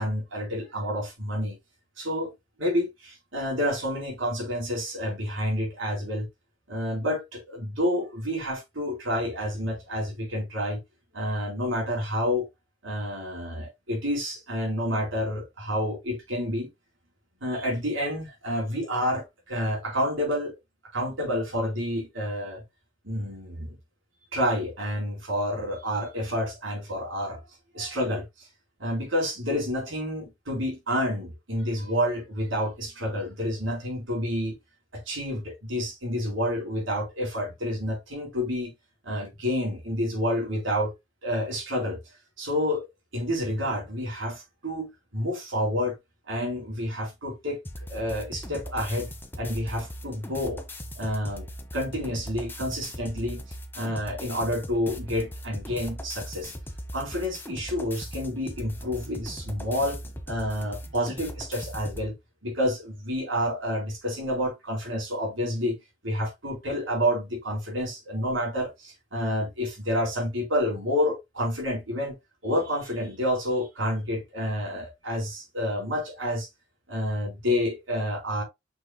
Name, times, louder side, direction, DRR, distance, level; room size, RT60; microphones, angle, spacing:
voice 1, 0.0-1.6 2.0-2.3 2.6-6.3 6.7-10.8 11.1-12.5 12.8-16.7 17.4-20.5 20.9-22.6 23.0-23.8 24.3-27.4 27.7-28.5 28.8-34.6 34.9-38.7 39.0-40.9 41.2-42.0 42.4-42.9 43.1-46.0 46.3-47.6 47.9-49.1 49.4-50.6 50.9-51.5 51.7-53.4 53.7-56.5 56.9-60.0 60.3-62.1 62.4-65.8 66.0-72.2 72.4-76.5 76.9-78.4, equal, 85° right, 4.4 m, -29 dB
sound 1, 47.6-62.1, equal, 10° left, 1.1 m, -39 dB
6.6 x 6.4 x 2.3 m
head